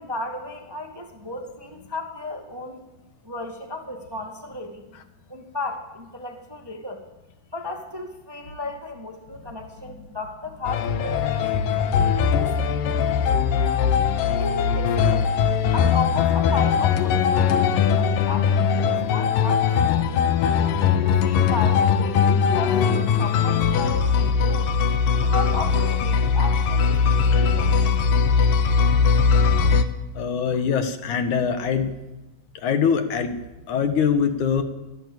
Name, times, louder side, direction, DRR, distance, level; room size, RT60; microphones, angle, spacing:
voice 1, 0.0-2.8 3.2-4.8 5.3-7.0 7.5-11.5 12.4-12.6 14.4-15.3 15.7-20.2 20.9-24.7 25.2-28.0, left 2 dB, 10° right, 4 dB, 1.6 m, -34 dB
sound 1, 10.7-29.9, left 6 dB, 85° left, 2.8 m, -20 dB
voice 2, 12.9-13.3 30.1-31.9 32.5-33.4 33.7-34.6, left 7 dB, 65° left, 8 dB, 2.8 m, -23 dB
22.5 x 17.5 x 8.1 m, 1.0 s
omnidirectional pair, 3.8 m